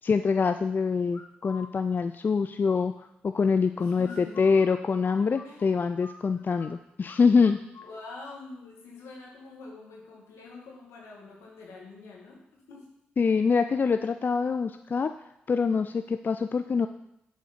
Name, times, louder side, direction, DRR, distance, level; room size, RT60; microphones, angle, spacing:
voice 1, 0.0-7.6 13.2-15.1 15.5-16.9, left 5 dB, 45° left, 9 dB, 0.3 m, -25 dB
sound 1, 1.1-1.7 4.0-6.7 7.0-7.2 7.4-8.4, left 3 dB, 60° left, 1.0 m, -47 dB
voice 2, 3.8-4.5 5.4-5.7 7.9-12.8, left 3 dB, 75° left, -2 dB, 1.7 m, -45 dB
8.2 x 3.9 x 5.1 m, 0.82 s
hypercardioid pair, 40°, 5 cm